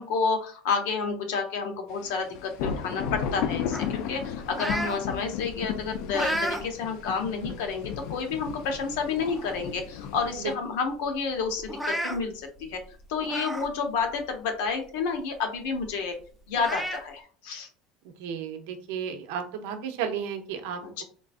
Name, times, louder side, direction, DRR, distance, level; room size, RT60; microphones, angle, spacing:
voice 1, 0.0-12.8 13.1-16.1 16.5-17.7 20.8-21.0, left 5 dB, 85° left, 4 dB, 0.8 m, -30 dB
sound 1, 2.0-10.5, left 8 dB, 70° left, 0.4 m, -34 dB
sound 2, 3.7-5.0 5.5-6.6 7.1-7.3 8.2-8.3 8.7-8.8 9.1-9.7 10.0-10.1 10.4-10.5 11.6-12.2 13.2-13.7 14.1-14.2 15.8-15.9 16.6-17.0, right 1 dB, ahead, 0.5 m, -32 dB
voice 2, 18.2-21.0, right 7 dB, 85° right, 7 dB, 0.6 m, -33 dB
3.8 x 2.4 x 2.4 m, 0.42 s
cardioid pair, 140°, 0 cm